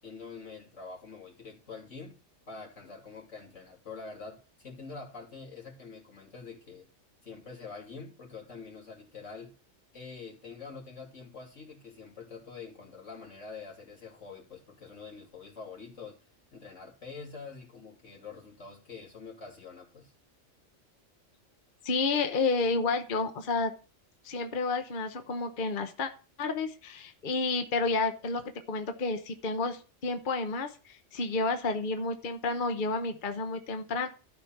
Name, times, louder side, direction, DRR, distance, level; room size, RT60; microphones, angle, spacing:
voice 1, 0.0-2.2 2.5-6.9 7.2-9.5 9.9-16.2 16.5-20.1, left 4 dB, 90° left, -2 dB, 3.2 m, -45 dB
voice 2, 21.8-23.7 24.2-26.1 26.4-34.1, left 3 dB, 45° left, 7 dB, 1.1 m, -30 dB
12.5 x 5.0 x 5.8 m, 0.34 s
omnidirectional pair, 1.2 m